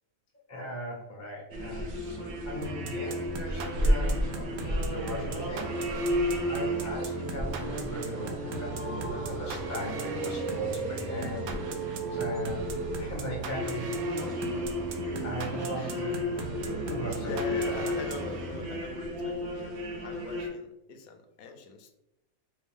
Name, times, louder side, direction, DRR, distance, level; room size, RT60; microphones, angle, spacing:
voice 1, 0.5-5.7 6.4-11.5 12.1-12.7 13.0-14.7 15.2-16.5 16.8-17.8, equal, 20° left, 0 dB, 0.4 m, -39 dB
sound 1, 1.5-20.5, equal, 55° right, 1.0 m, -33 dB
sound 2, 2.6-18.9, right 3 dB, 90° right, 1.1 m, -39 dB
voice 2, 15.8-16.1 17.2-21.9, left 4 dB, 85° left, 6 dB, 1.1 m, -41 dB
4.5 x 2.3 x 3.5 m, 0.90 s
omnidirectional pair, 1.5 m